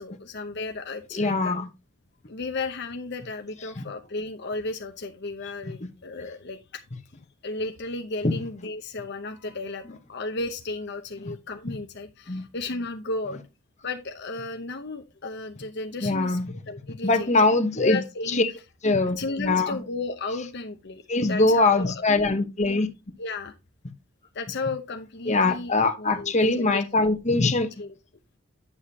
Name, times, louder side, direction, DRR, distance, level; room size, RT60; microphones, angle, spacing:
voice 1, 0.0-1.5 2.3-6.8 7.4-13.4 13.8-17.5 17.8-18.4 19.2-21.0 21.3-22.2 23.2-23.5 24.3-27.1 27.8-27.9, left 3 dB, 60° left, 0.8 m, -34 dB
voice 2, 1.1-1.7 3.8-3.9 5.8-5.9 8.2-8.3 12.3-12.5 16.0-16.4 17.0-18.0 18.3-18.5 18.8-19.8 21.1-22.9 25.3-27.7, left 2 dB, 35° left, 1.2 m, -22 dB
10.0 x 7.2 x 2.8 m
head